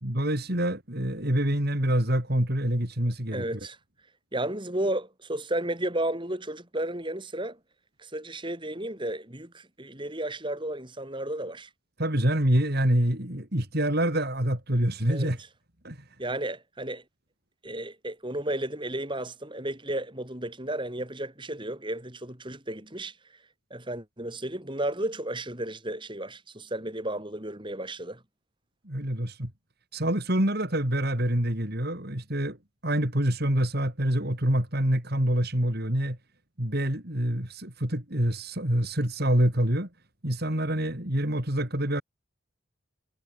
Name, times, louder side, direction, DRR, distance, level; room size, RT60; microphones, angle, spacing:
voice 1, 0.0-3.4 12.0-15.4 15.8-16.0 28.9-29.5 29.9-32.6 32.8-36.2 36.6-39.9 40.2-42.0, right 1 dB, 45° right, 4.1 m, -26 dB
voice 2, 3.3-3.8 4.3-7.6 8.0-11.7 15.1-15.3 16.2-17.0 17.6-23.2 23.7-28.2, right 1 dB, 20° right, 3.3 m, -33 dB
head